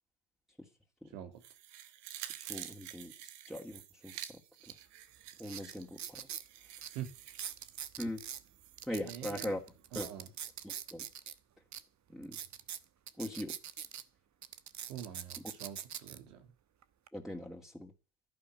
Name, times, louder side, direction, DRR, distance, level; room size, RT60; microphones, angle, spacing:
sound 1, 1.4-8.9 9.2-9.3, right 12 dB, 60° right, 1.7 m, -49 dB
voice 1, 2.5-3.1 3.5-4.1 5.4-6.2 8.0-8.2 8.9-9.6 9.9-10.1 10.6-11.1 12.1-12.4 13.2-13.5 17.1-17.9, left 1 dB, ahead, 2.8 m, -40 dB
sound 2, 4.7-4.8 5.3-6.5 6.8-6.9 7.3-8.4 8.8-11.3 11.7-11.8 12.2-14.0 14.4-16.2 16.8-17.1, right 9 dB, 40° right, 1.1 m, -43 dB
voice 2, 8.9-9.6 9.9-10.3 14.9-16.5, right 10 dB, 80° right, 2.6 m, -45 dB
11.0 x 11.0 x 8.3 m
hypercardioid pair, 65°, 46 cm